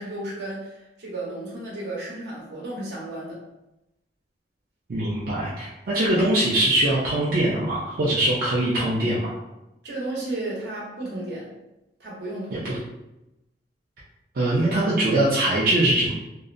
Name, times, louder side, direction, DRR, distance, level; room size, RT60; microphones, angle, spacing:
voice 1, 0.0-3.4 9.8-11.5 12.0-12.7, right 2 dB, 70° right, -4 dB, 0.8 m, -33 dB
voice 2, 4.9-9.3 14.3-16.1, right 1 dB, 50° right, -7 dB, 0.4 m, -22 dB
2.7 x 2.0 x 2.5 m, 0.93 s
head